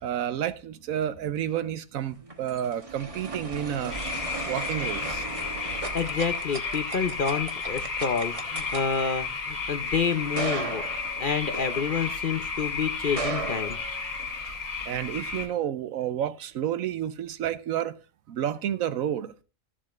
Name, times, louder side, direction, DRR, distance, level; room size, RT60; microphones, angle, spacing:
voice 1, 0.0-4.0 4.5-5.2 14.9-17.9 18.3-19.3, right 10 dB, 80° right, 1.1 m, -30 dB
sound 1, 2.0-12.4 13.0-14.5, right 3 dB, 25° right, 1.1 m, -37 dB
sound 2, 3.9-15.5, left 4 dB, 65° left, 2.7 m, -33 dB
voice 2, 5.9-10.8 11.2-13.8, left 6 dB, 50° left, 0.7 m, -28 dB
14.5 x 7.4 x 2.5 m
omnidirectional pair, 1.4 m